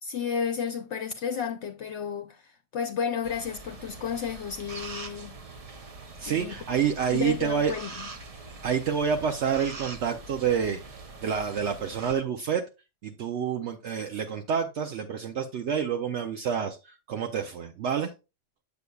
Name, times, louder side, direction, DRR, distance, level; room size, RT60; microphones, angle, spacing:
voice 1, 0.0-5.4 6.3-6.5 7.1-8.1, left 7 dB, 70° left, 0.9 m, -32 dB
sound 1, 3.2-12.1, right 3 dB, 35° right, 0.7 m, -43 dB
voice 2, 6.2-7.7 8.6-10.8 11.2-12.6 13.0-18.1, right 7 dB, 70° right, 0.9 m, -28 dB
8.0 x 7.0 x 2.3 m
omnidirectional pair, 1.3 m